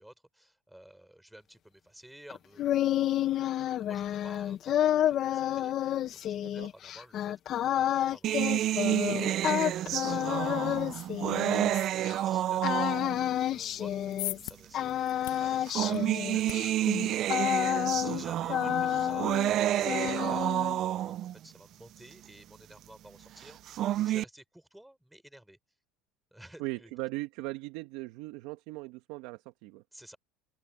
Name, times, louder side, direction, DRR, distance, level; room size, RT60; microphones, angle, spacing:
voice 1, 0.0-11.2 12.2-25.6 26.3-26.9 29.9-30.2, right 1 dB, 5° right, 7.1 m, -54 dB
sound 1, 2.3-12.1 12.6-14.5 14.7-18.2 18.5-19.5 19.8-20.8, left 11 dB, 50° left, 1.6 m, -30 dB
sound 2, 8.2-13.3 14.2-14.3 15.4-21.3 23.5-24.2, right 13 dB, 50° right, 0.8 m, -29 dB
sound 3, 13.8-20.1, left 19 dB, 85° left, 1.6 m, -45 dB
voice 2, 18.1-18.4 26.6-29.8, right 21 dB, 75° right, 1.8 m, -39 dB
open air
supercardioid pair, 95°, 0 cm